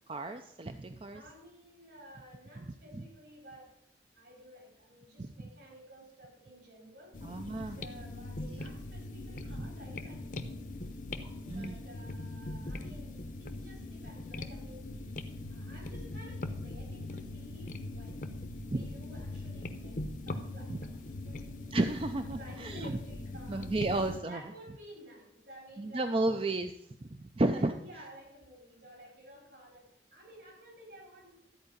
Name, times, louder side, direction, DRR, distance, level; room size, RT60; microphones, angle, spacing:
voice 1, 0.1-1.2 2.6-3.0 5.2-5.3 7.2-7.8 8.5-8.7 9.6-9.7 11.5-11.8 18.7-18.9 20.7-20.8 21.7-23.0 23.5-24.4 25.8-26.7 27.0-27.7, right 2 dB, 30° right, 7 dB, 0.5 m, -33 dB
voice 2, 1.1-3.8 4.2-7.2 7.6-14.9 15.5-18.3 18.7-20.0 20.3-21.0 21.2-21.6 22.4-23.7 24.3-26.5 27.5-31.4, equal, 70° right, -2 dB, 5.2 m, -53 dB
sound 1, 7.1-24.2, left 2 dB, 45° left, 0.8 m, -41 dB
13.0 x 4.8 x 8.9 m, 0.76 s
head